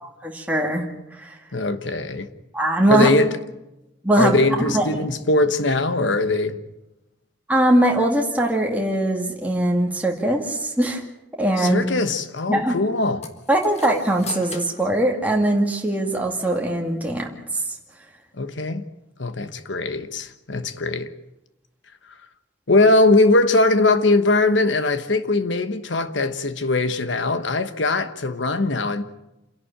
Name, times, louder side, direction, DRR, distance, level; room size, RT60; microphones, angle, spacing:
voice 1, 0.0-0.9 1.1-1.4 2.5-3.1 4.0-4.4 4.6-4.9 7.5-11.0 11.4-11.9 12.5-12.8 13.5-17.8, right 1 dB, 10° right, 2.3 m, -21 dB
voice 2, 1.5-2.3 2.9-3.3 4.2-6.6 11.6-13.3 18.3-18.8 19.2-21.1 22.7-29.0, left 2 dB, 80° left, 1.3 m, -20 dB
sound 1, 13.2-15.9, left 3 dB, 35° left, 1.6 m, -37 dB
27.5 x 11.5 x 8.9 m
head